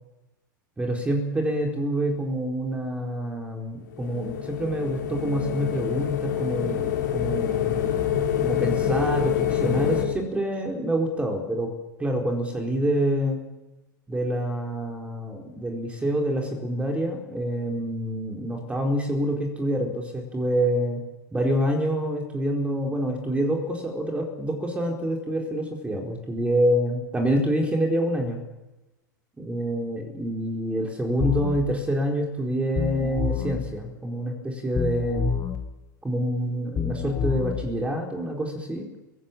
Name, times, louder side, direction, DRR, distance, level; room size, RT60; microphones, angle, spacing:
voice 1, 0.8-7.8 8.4-11.7 12.0-13.4 14.1-21.0 21.3-28.4 29.4-35.3 36.0-38.9, right 1 dB, 10° right, 2 dB, 4.3 m, -27 dB
sound 1, 3.9-10.0, left 9 dB, 65° left, 4.7 m, -26 dB
sound 2, 31.2-31.6 32.8-33.6 34.8-35.6 36.8-37.6, left 7 dB, 25° left, 2.7 m, -27 dB
28.5 x 18.0 x 7.5 m, 1.0 s
figure-of-eight pair, 90°, 11 cm